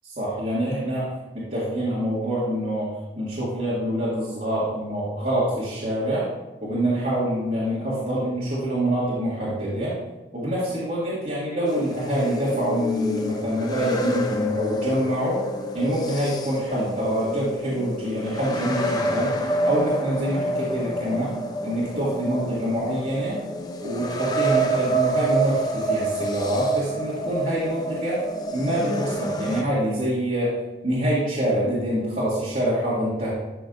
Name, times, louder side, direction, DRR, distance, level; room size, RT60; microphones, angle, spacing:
voice 1, 0.0-6.3 6.6-10.0 10.3-15.4 15.7-19.3 19.6-21.3 21.6-23.4 23.8-28.2 28.5-30.5 30.8-33.3, right 1 dB, 45° right, -10 dB, 2.2 m, -25 dB
sound 1, 11.7-29.6, right 1 dB, 20° left, 0.7 m, -28 dB
12.5 x 6.1 x 2.7 m, 1.1 s
head